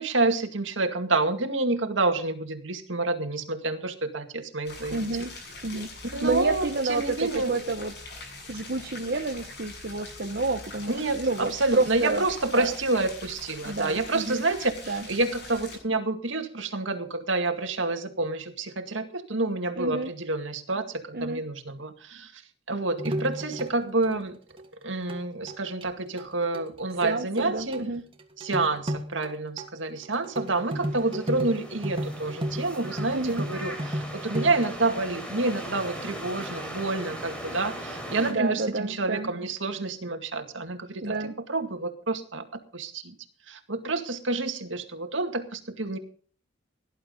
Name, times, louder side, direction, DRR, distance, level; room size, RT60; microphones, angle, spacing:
voice 1, 0.0-5.0 6.1-7.5 10.9-22.4 22.7-24.4 24.8-27.8 28.4-41.1 41.5-42.4 42.7-43.1 43.5-46.0, right 2 dB, 70° right, 6 dB, 2.2 m, -28 dB
sound 1, 4.6-15.8, left 2 dB, 55° left, 7.9 m, -43 dB
voice 2, 4.9-5.3 5.6-5.9 6.2-7.9 8.5-12.2 12.5-12.7 13.6-14.5 14.9-15.1 19.8-20.1 21.1-21.4 27.0-28.0 33.1-33.5 38.2-39.3 41.0-41.3, right 3 dB, 50° right, 4 dB, 1.1 m, -29 dB
sound 2, 23.0-24.2 24.6-24.7 25.1-25.2 25.5-25.8 26.2-26.3 26.5-26.6 26.9-27.5 27.7-27.8 28.2-29.3 29.6-29.7 30.0-34.8, equal, 30° right, 1.8 m, -33 dB
sound 3, 30.4-38.3, equal, 5° left, 3.9 m, -39 dB
18.0 x 11.5 x 3.9 m, 0.42 s
head